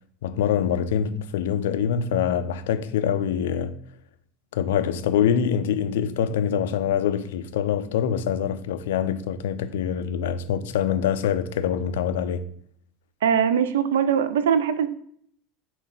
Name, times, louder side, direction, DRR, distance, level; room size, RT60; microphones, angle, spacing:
voice 1, 0.2-3.8 4.5-12.4, left 8 dB, 70° left, 0.3 m, -24 dB
voice 2, 13.2-14.9, right 7 dB, 70° right, 0.3 m, -21 dB
5.8 x 2.2 x 4.0 m
figure-of-eight pair, 80°, 0 cm